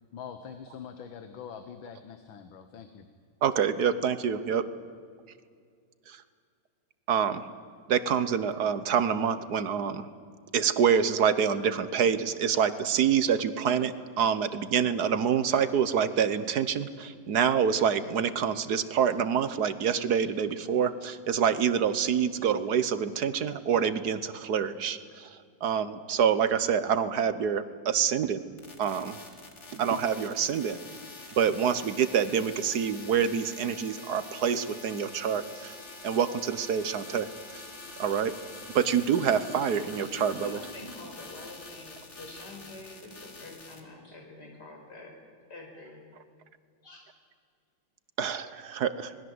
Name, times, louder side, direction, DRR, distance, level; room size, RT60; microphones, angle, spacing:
voice 1, 0.1-3.1, left 7 dB, 90° left, 8 dB, 2.0 m, -44 dB
voice 2, 3.4-4.6 6.1-6.2 7.1-7.5 7.9-10.1 10.5-28.4 28.8-29.2 29.7-30.8 31.4-35.8 36.0-37.3 37.5-37.6 38.0-38.3 38.7-40.6 48.2-49.1, right 7 dB, 60° right, 13 dB, 1.4 m, -26 dB
sound 1, 28.6-43.8, left 3 dB, 35° left, 2.5 m, -46 dB
voice 3, 39.9-45.1 45.5-46.0 46.8-47.1, left 2 dB, 60° left, 0 dB, 6.0 m, -46 dB
26.0 x 20.5 x 7.9 m, 2.2 s
omnidirectional pair, 2.1 m